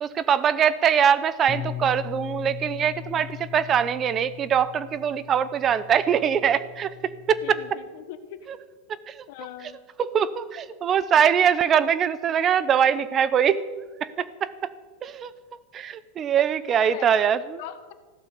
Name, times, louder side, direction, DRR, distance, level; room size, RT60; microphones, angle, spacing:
voice 1, 0.0-6.9 7.3-7.6 9.1-9.2 10.0-13.6 14.0-14.5 15.0-15.3 15.7-17.6, right 8 dB, 25° right, 16 dB, 0.7 m, -22 dB
Bass guitar, 1.5-7.7, left 11 dB, 15° left, 0.9 m, -39 dB
voice 2, 7.4-8.4 9.3-9.8 16.8-17.1 17.6-17.9, left 12 dB, 55° left, 9 dB, 1.5 m, -40 dB
15.5 x 12.0 x 6.8 m, 1.4 s
supercardioid pair, 160°, 0 cm